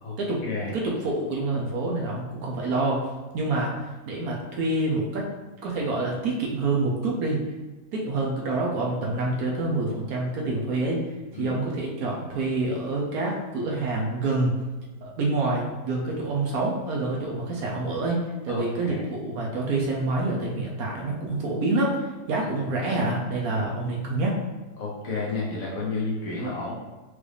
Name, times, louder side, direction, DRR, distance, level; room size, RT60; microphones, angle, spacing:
voice 1, 0.7-3.1 3.3-3.7 4.1-5.3 5.6-7.5 7.9-11.0 11.4-14.6 15.0-24.4, right 2 dB, 70° right, -2 dB, 1.1 m, -27 dB
voice 2, 18.5-19.0 22.4-22.5 23.7-23.8 24.8-26.7, left 3 dB, 60° left, -4 dB, 1.2 m, -31 dB
4.8 x 2.6 x 3.3 m, 1.2 s
omnidirectional pair, 1.8 m